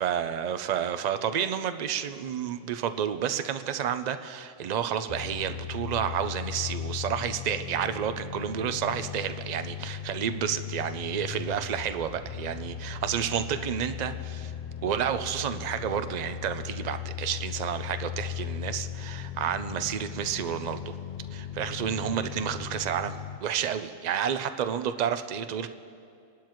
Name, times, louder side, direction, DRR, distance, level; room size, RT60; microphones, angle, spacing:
voice 1, 0.0-14.5 14.8-21.0 21.3-25.7, right 8 dB, 50° right, 9 dB, 0.5 m, -30 dB
sound 1, 5.1-23.4, left 10 dB, 70° left, 0.4 m, -37 dB
27.0 x 12.0 x 3.1 m, 2.4 s
omnidirectional pair, 1.4 m